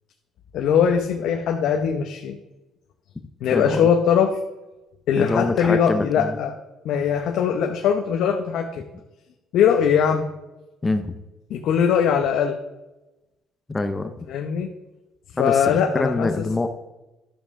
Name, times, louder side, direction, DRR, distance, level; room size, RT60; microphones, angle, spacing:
voice 1, 0.5-2.4 3.4-4.4 5.1-6.6 6.8-8.8 9.5-10.2 11.5-12.6 14.3-14.7 15.4-16.4, left 7 dB, 70° left, 3 dB, 0.9 m, -21 dB
voice 2, 3.5-3.9 5.2-6.4 10.8-11.2 13.7-14.1 15.4-16.7, left 3 dB, 15° left, 8 dB, 0.7 m, -25 dB
12.0 x 7.2 x 3.7 m, 1.0 s
cardioid pair, 125°, 0 cm